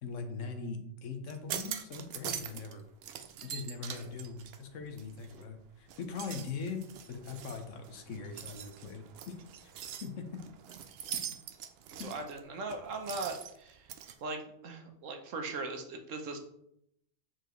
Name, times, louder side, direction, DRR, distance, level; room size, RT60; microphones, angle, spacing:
voice 1, 0.0-2.8 3.4-9.4 9.6-9.7 10.0-10.3 12.0-12.1, left 4 dB, 80° left, 6 dB, 1.2 m, -41 dB
sound 1, 1.3-2.7 3.0-5.5 5.9-14.1, right 9 dB, 65° right, 0.7 m, -43 dB
voice 2, 12.0-13.9 14.2-16.4, right 3 dB, 90° right, 4 dB, 1.2 m, -39 dB
6.9 x 4.6 x 3.1 m, 0.75 s
omnidirectional pair, 1.3 m